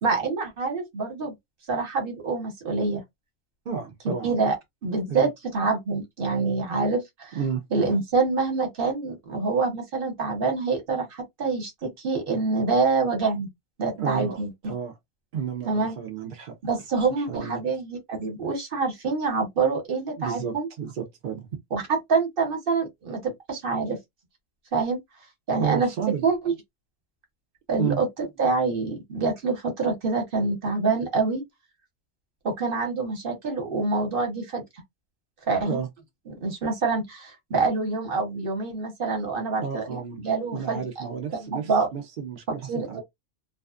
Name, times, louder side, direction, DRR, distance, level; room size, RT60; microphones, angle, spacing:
voice 1, 0.0-1.3 1.7-3.0 4.0-4.5 4.8-7.4 7.7-13.5 13.8-14.5 15.6-16.0 16.6-20.7 21.7-24.0 24.7-25.0 25.5-25.9 26.2-26.5 27.7-31.4 32.4-34.6 35.5-35.8 36.4-41.1 41.4-41.9 42.7-43.0, right 4 dB, 45° right, 1.0 m, -26 dB
voice 2, 3.7-4.3 5.1-5.3 7.3-7.6 14.0-14.9 15.3-16.6 17.3-17.6 20.2-21.5 25.6-26.2 27.8-28.0 35.6-35.9 39.6-40.2 40.5-43.0, right 7 dB, 60° right, 0.5 m, -31 dB
2.4 x 2.3 x 2.3 m
omnidirectional pair, 1.5 m